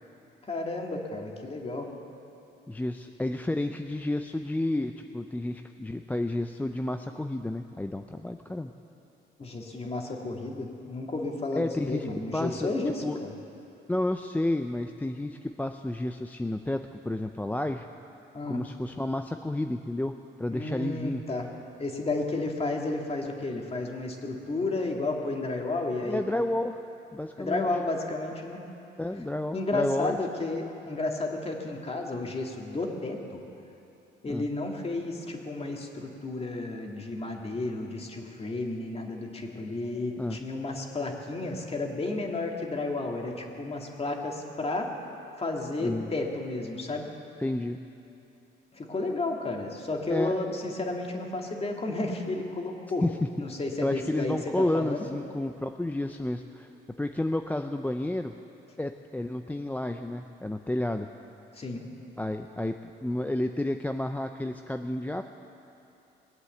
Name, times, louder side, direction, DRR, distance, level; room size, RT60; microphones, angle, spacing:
voice 1, 0.4-1.9 9.4-13.3 18.3-18.6 20.5-21.5 21.8-26.2 27.4-28.6 29.5-33.4 34.2-45.0 45.4-47.1 48.7-53.0 53.4-55.0 61.5-61.8, left 2 dB, 30° left, 1 dB, 2.1 m, -32 dB
voice 2, 2.7-8.7 11.5-12.1 12.3-12.7 13.0-13.2 13.9-17.9 18.5-21.2 26.0-26.8 27.1-27.7 29.0-30.2 34.3-34.4 40.2-40.4 45.8-46.1 47.4-47.8 50.1-50.4 53.0-53.2 53.8-56.7 57.0-58.4 58.8-61.1 62.2-65.2, left 1 dB, 10° left, 6 dB, 0.5 m, -31 dB
20.5 x 8.3 x 7.9 m, 2.8 s
cardioid pair, 90°, 20 cm